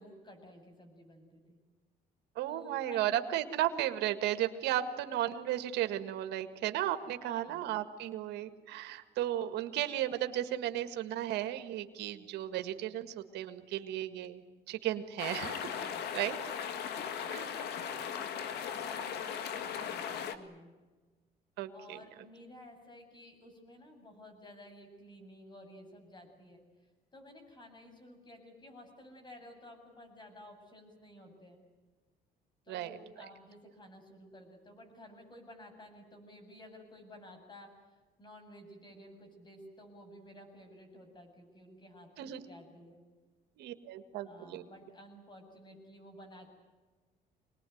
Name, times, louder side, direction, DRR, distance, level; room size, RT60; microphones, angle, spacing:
voice 1, 0.0-1.6 2.4-3.2 7.1-7.6 15.7-16.2 16.9-20.7 21.7-31.6 32.6-43.0 44.2-46.5, left 1 dB, 25° left, 5 dB, 8.0 m, -53 dB
voice 2, 2.3-15.7 16.1-16.4 17.3-17.5 21.6-22.0 32.7-33.0 42.2-42.4 43.6-44.6, right 12 dB, 85° right, 9 dB, 1.8 m, -35 dB
sound 1, 15.2-20.4, left 8 dB, 75° left, 1.9 m, -38 dB
25.5 x 20.0 x 9.4 m, 1.3 s
cardioid pair, 110°, 17 cm